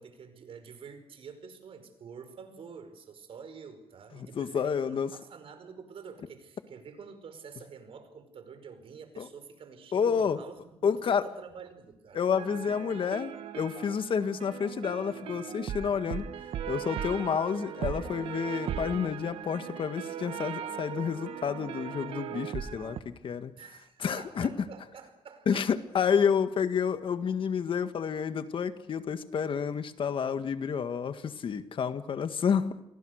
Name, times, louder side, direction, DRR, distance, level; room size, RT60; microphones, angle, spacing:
voice 1, 0.0-12.2 23.6-25.7, right 6 dB, 75° right, 9 dB, 5.1 m, -47 dB
voice 2, 4.1-5.1 9.2-9.3 9.9-10.4 10.8-11.2 12.1-16.3 16.7-23.5 24.0-24.5 25.5-32.7, left 7 dB, 65° left, 9 dB, 1.9 m, -29 dB
sound 1, 12.3-23.0, right 9 dB, 90° right, 1.5 m, -38 dB
29.5 x 23.0 x 6.6 m, 0.81 s
cardioid pair, 80°, 10 cm